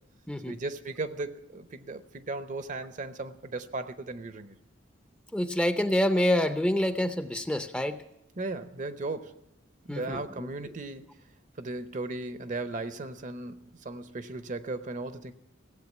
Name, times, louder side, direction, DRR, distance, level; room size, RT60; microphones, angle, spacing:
voice 1, 0.5-4.5 8.4-9.4 9.8-11.1 11.6-15.3, right 2 dB, 40° right, 0.7 m, -36 dB
voice 2, 5.3-8.0 9.9-10.5, left 1 dB, 5° left, 0.6 m, -27 dB
16.5 x 7.9 x 9.3 m
head